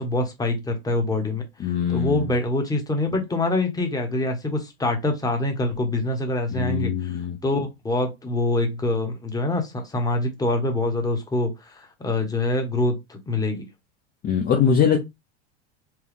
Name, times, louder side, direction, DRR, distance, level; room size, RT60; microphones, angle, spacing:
voice 1, 0.0-13.7, left 2 dB, 10° left, 1.1 m, -25 dB
voice 2, 1.6-2.3 6.5-7.4 14.2-15.0, left 7 dB, 30° left, 0.7 m, -22 dB
4.6 x 2.3 x 3.4 m
supercardioid pair, 120°, 33 cm